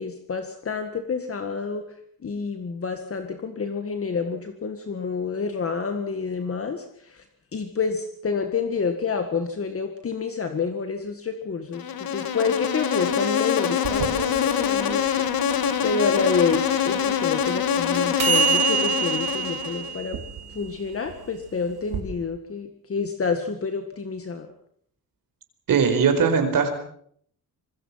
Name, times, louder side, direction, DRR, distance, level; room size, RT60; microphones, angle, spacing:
voice 1, 0.0-1.8 2.2-7.2 7.5-15.1 15.5-20.2 20.5-24.5, left 5 dB, 40° left, 6 dB, 1.9 m, -28 dB
Insect, 11.7-20.0, left 8 dB, 75° left, 2.4 m, -25 dB
sound 1, 13.8-22.0, right 8 dB, 90° right, 3.8 m, -28 dB
voice 2, 25.7-26.7, right 6 dB, 65° right, 7 dB, 4.8 m, -20 dB
26.0 x 21.5 x 5.8 m, 0.64 s
wide cardioid pair, 150°, 36 cm